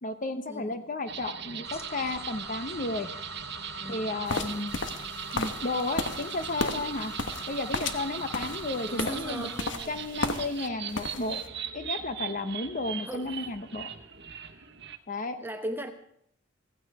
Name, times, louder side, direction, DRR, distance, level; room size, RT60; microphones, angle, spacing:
voice 1, 0.0-3.1 3.9-4.8 5.3-7.1 7.5-9.5 9.9-11.4 11.7-13.9 15.1-15.4, left 2 dB, 45° left, 9 dB, 0.8 m, -33 dB
sound 1, 1.1-15.0, right 8 dB, 60° right, 1.1 m, -39 dB
sound 2, 1.6-9.6, left 2 dB, 15° left, 0.7 m, -44 dB
voice 2, 3.8-4.2 8.9-10.0 13.0-13.5 14.3-14.7 15.4-15.9, right 1 dB, 10° right, 5 dB, 1.0 m, -39 dB
sound 3, 4.3-10.7 10.9-11.4, left 3 dB, 65° left, 1.2 m, -34 dB
16.0 x 15.5 x 4.8 m, 0.71 s
head